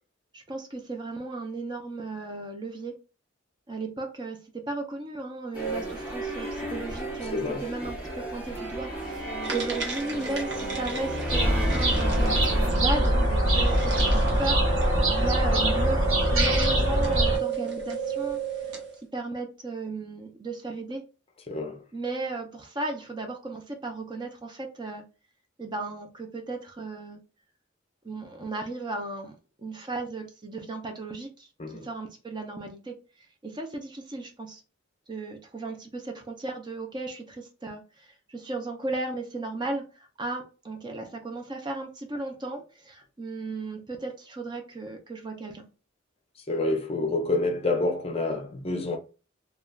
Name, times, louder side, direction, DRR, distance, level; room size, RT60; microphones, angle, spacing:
voice 1, 0.3-2.9 3.7-16.0 16.3-18.8 19.1-21.0 21.9-25.1 25.6-27.2 28.0-32.9 33.4-34.6 35.1-45.7, right 2 dB, 20° right, 0.4 m, -35 dB
sound 1, 5.5-12.7, right 1 dB, 5° right, 0.9 m, -33 dB
voice 2, 7.3-7.6 21.5-21.8 31.6-31.9 46.5-49.0, left 2 dB, 30° left, 0.5 m, -28 dB
sound 2, 9.4-19.0, right 4 dB, 60° right, 0.9 m, -32 dB
sound 3, 11.3-17.4, right 1 dB, 80° right, 1.1 m, -23 dB
3.2 x 2.3 x 2.3 m
head